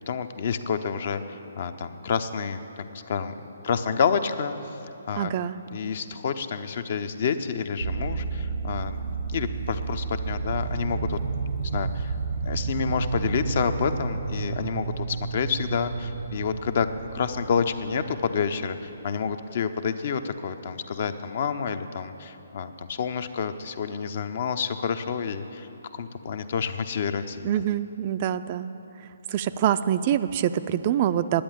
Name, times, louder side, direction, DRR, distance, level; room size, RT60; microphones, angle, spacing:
voice 1, 0.1-3.3 3.6-4.8 5.1-5.3 5.7-9.0 9.3-12.1 12.4-16.9 17.1-27.5, left 6 dB, 50° left, 10 dB, 0.7 m, -29 dB
voice 2, 5.2-5.6 27.4-28.7 29.0-31.4, right 10 dB, 35° right, 12 dB, 0.4 m, -25 dB
sound 1, 7.8-19.2, right 4 dB, 75° right, 0.9 m, -31 dB
10.5 x 9.1 x 8.8 m, 2.9 s
figure-of-eight pair, 135°, 0 cm